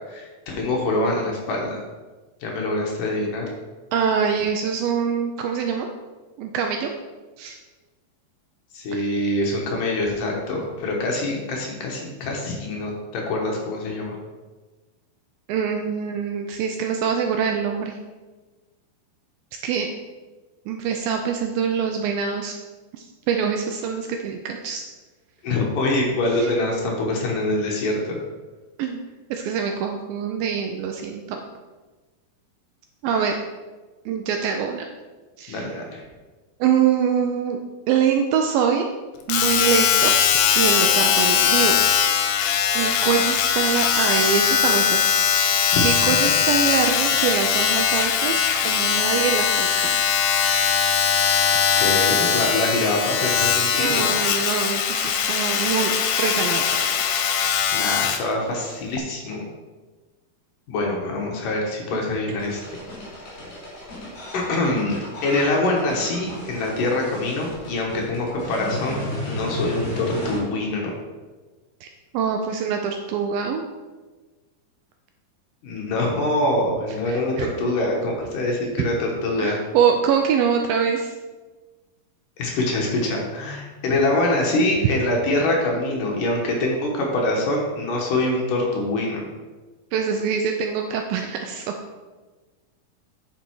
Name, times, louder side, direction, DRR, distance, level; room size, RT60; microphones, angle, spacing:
voice 1, 0.1-1.8 2.4-3.5 8.7-14.2 25.4-28.2 35.5-36.0 45.7-45.8 51.8-54.2 57.7-59.4 60.7-62.8 64.3-70.9 75.6-79.6 82.4-89.3, left 2 dB, 65° left, -1 dB, 2.6 m, -24 dB
voice 2, 3.9-5.9 6.4-6.9 7.4-7.6 8.9-9.1 15.5-18.0 19.6-19.9 20.7-22.6 22.9-24.8 28.8-29.0 29.3-31.4 33.0-33.4 34.1-34.8 35.4-35.7 36.6-37.6 37.9-38.9 39.3-40.1 40.6-41.8 42.8-45.2 45.8-50.2 53.7-56.8 71.8-71.9 72.1-73.6 77.1-77.5 79.4-81.2 89.9-91.7, right 7 dB, 80° right, 4 dB, 2.1 m, -24 dB
Domestic sounds home sounds, 39.3-58.3 59.0-59.1, left 8 dB, 85° left, 2.8 m, -20 dB
sound 1, 62.4-70.4, left 1 dB, 45° left, 3.5 m, -34 dB
9.9 x 5.5 x 4.6 m, 1.3 s
omnidirectional pair, 4.6 m